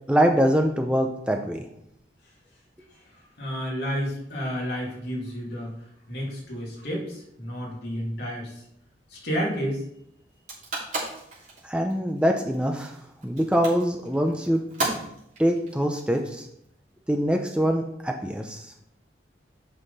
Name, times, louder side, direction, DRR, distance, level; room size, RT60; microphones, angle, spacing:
voice 1, 0.1-1.6 11.6-12.9 13.2-14.6 15.4-16.5 17.1-18.7, equal, 5° right, 3 dB, 0.6 m, -24 dB
voice 2, 3.4-5.7 6.1-8.6 9.1-9.8, equal, 60° left, -3 dB, 2.6 m, -31 dB
sound 1, 10.3-16.6, right 2 dB, 40° right, 3.2 m, -34 dB
8.1 x 5.6 x 4.2 m, 0.75 s
head